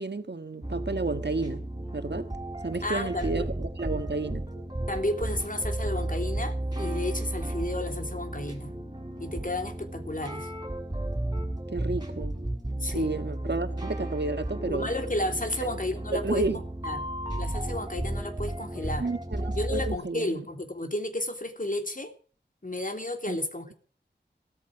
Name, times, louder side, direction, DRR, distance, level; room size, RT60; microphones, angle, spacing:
voice 1, 0.0-1.7 1.9-2.3 2.6-4.5 11.7-12.4 12.9-14.9 15.6-15.7 16.1-16.6 19.0-20.4 23.3-23.4, right 3 dB, 70° right, 1.7 m, -31 dB
sound 1, 0.6-20.0, right 1 dB, 20° right, 6.6 m, -33 dB
voice 2, 2.8-3.5 4.9-8.7 9.2-10.5 12.8-13.1 14.6-16.5 16.8-17.0 17.4-19.0 19.5-22.1 22.6-23.7, left 1 dB, 45° left, 3.1 m, -32 dB
16.5 x 14.0 x 4.7 m
wide cardioid pair, 45°, 19 cm